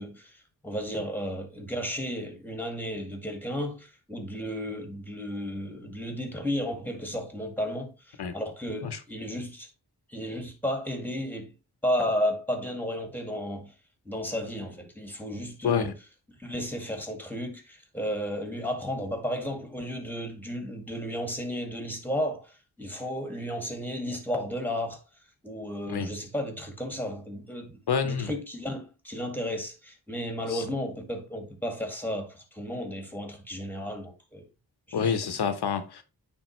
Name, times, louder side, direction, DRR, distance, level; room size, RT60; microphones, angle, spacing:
voice 1, 0.0-9.7 10.1-11.5 11.8-13.7 14.1-15.9 16.4-25.0 25.4-34.5 34.9-35.1, equal, 5° left, 2.0 m, -33 dB
voice 2, 27.9-28.3 30.5-30.6 34.9-36.0, left 6 dB, 85° left, 1.0 m, -27 dB
9.2 x 3.5 x 3.1 m
wide cardioid pair, 70°, 38 cm